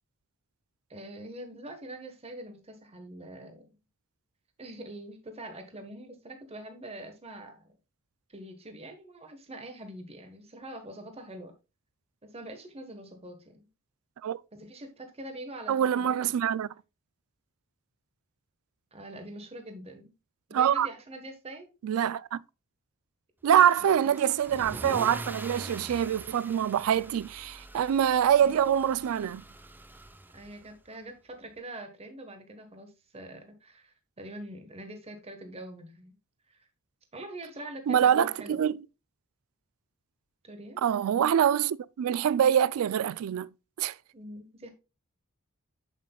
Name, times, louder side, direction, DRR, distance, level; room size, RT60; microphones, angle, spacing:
voice 1, 0.9-3.8 4.6-7.7 8.3-11.5 12.2-13.7 14.5-16.3 18.9-20.1 20.5-21.7 23.8-24.1 28.4-28.6 30.3-36.2 36.5-36.7 37.1-38.6 40.4-40.8 44.1-44.7, right 1 dB, 30° right, 1.2 m, -44 dB
voice 2, 15.7-16.7 20.5-20.9 21.8-22.4 23.4-29.4 37.9-38.8 40.8-43.5 43.8-43.9, right 9 dB, 70° right, 0.3 m, -25 dB
Car / Engine starting / Accelerating revving vroom, 23.6-30.7, right 1 dB, 10° right, 0.5 m, -44 dB
7.6 x 7.5 x 2.3 m
head